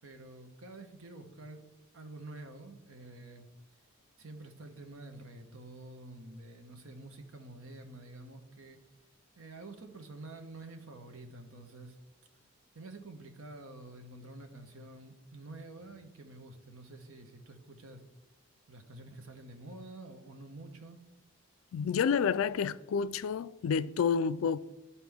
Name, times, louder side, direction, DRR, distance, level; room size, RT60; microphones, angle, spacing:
voice 1, 0.0-1.7 1.9-3.5 4.2-8.8 9.4-12.0 12.7-18.0 18.7-21.0, right 2 dB, 80° right, 0.9 m, -48 dB
voice 2, 21.7-24.6, left 6 dB, 75° left, 0.3 m, -29 dB
12.0 x 4.2 x 3.5 m
head